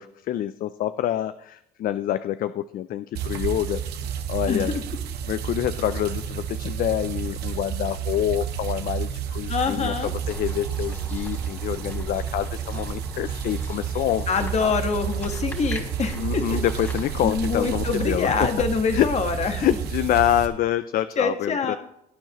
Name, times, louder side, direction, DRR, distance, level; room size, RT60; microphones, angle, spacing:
voice 1, 0.0-3.8 4.3-4.7 5.3-14.7 16.1-18.5 18.9-19.1 19.6-21.8, left 12 dB, 55° left, 13 dB, 0.4 m, -26 dB
sound 1, 3.2-20.5, right 8 dB, 75° right, 1.1 m, -30 dB
voice 2, 4.5-4.8 9.5-10.1 14.3-16.4 17.2-19.7 21.2-21.8, left 5 dB, 40° left, 7 dB, 1.4 m, -25 dB
sound 2, 10.2-18.2, left 1 dB, 15° left, 2.5 m, -41 dB
17.5 x 9.1 x 3.0 m, 0.79 s
cardioid pair, 110°, 17 cm